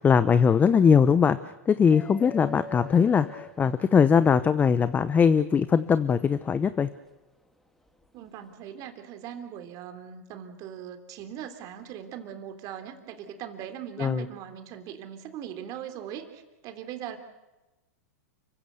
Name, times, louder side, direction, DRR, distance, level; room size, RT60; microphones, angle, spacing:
voice 1, 0.0-1.4 1.7-6.9 14.0-14.3, left 6 dB, 20° left, 14 dB, 0.8 m, -21 dB
sound 1, 1.9-4.3 6.0-6.1 7.9-8.1, left 3 dB, 5° left, 2.5 m, -43 dB
voice 2, 2.5-2.9 8.1-17.2, right 9 dB, 40° right, 8 dB, 3.2 m, -40 dB
29.5 x 16.0 x 8.2 m, 1.1 s
hypercardioid pair, 115°, 9 cm